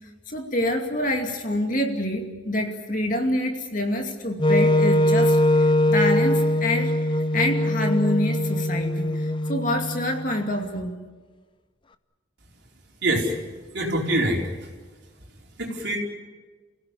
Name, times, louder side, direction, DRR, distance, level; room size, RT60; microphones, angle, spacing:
voice 1, 0.3-10.9, left 1 dB, 40° left, 3 dB, 2.5 m, -26 dB
Wind instrument woodwind instrument, 4.4-10.4, left 1 dB, 25° left, 0.6 m, -22 dB
voice 2, 13.0-13.3 13.7-14.4 15.6-16.0, right 1 dB, 55° right, -1 dB, 4.6 m, -24 dB
29.0 x 16.5 x 8.6 m, 1.4 s
head